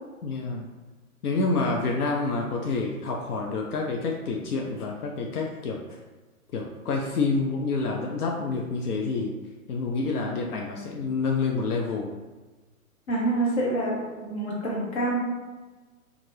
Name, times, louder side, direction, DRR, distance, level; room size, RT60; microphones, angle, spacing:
voice 1, 0.2-0.6 1.2-5.8 6.5-9.3 9.7-12.2, left 3 dB, 85° left, 0 dB, 0.5 m, -28 dB
voice 2, 13.1-15.1, right 2 dB, 45° left, -4 dB, 1.2 m, -27 dB
2.6 x 2.5 x 3.1 m, 1.3 s
hypercardioid pair, 140°, 44 cm